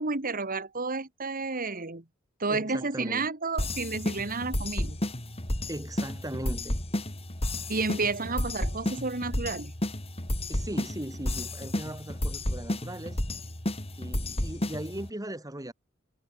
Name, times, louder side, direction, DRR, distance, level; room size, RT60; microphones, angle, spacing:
voice 1, 0.0-2.0 2.4-5.0 7.7-9.7, right 3 dB, 45° right, 2.1 m, -31 dB
voice 2, 2.5-3.3 5.7-6.8 10.5-13.2 14.0-15.7, right 1 dB, 15° right, 2.5 m, -38 dB
sound 1, 3.6-15.1, left 1 dB, 30° left, 3.7 m, -32 dB
head